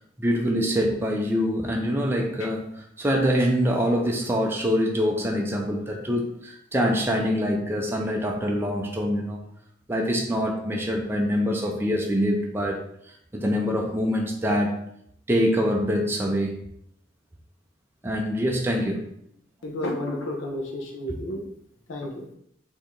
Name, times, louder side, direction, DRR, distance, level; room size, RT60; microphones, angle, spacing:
voice 1, 0.2-9.4 9.9-14.8 15.3-16.6 18.0-19.0, equal, 10° right, 0 dB, 0.4 m, -25 dB
voice 2, 19.6-21.4 21.9-22.3, left 1 dB, 75° left, 1 dB, 0.9 m, -31 dB
4.7 x 2.8 x 3.7 m, 0.71 s
head